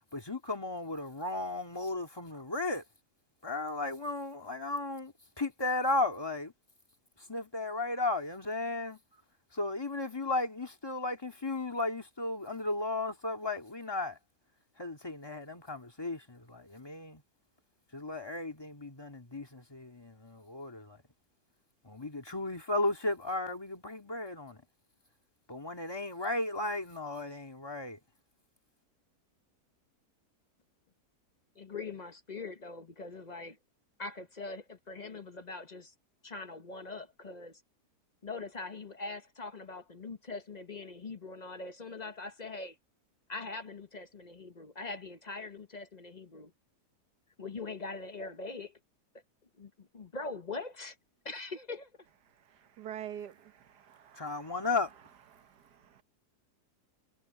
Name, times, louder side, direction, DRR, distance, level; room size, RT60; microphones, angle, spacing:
voice 1, 0.1-2.8 3.4-6.5 7.2-9.0 9.5-14.2 14.8-17.2 17.9-21.0 21.8-24.6 25.5-28.0 54.1-54.9, left 2 dB, 15° left, 2.1 m, -35 dB
voice 2, 31.5-33.6 34.0-35.9 36.2-37.6 38.2-42.8 43.3-46.5 47.4-48.8 49.6-51.0 51.2-51.9, left 3 dB, 30° left, 1.0 m, -42 dB
voice 3, 52.8-54.5 55.3-56.0, right 10 dB, 80° right, 1.7 m, -46 dB
omnidirectional pair, 1.7 m